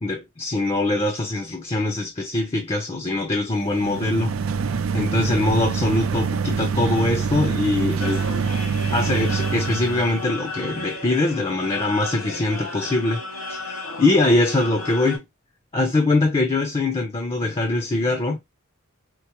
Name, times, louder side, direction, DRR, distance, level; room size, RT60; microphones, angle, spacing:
voice 1, 0.0-4.4 4.9-8.3 8.9-13.2 13.5-15.2 15.7-18.4, left 2 dB, 25° left, 0.6 m, -22 dB
sound 1, 3.6-10.2, right 5 dB, 65° right, 0.4 m, -25 dB
sound 2, 8.0-15.2, left 2 dB, 80° left, 2.7 m, -33 dB
4.4 x 2.0 x 2.9 m
head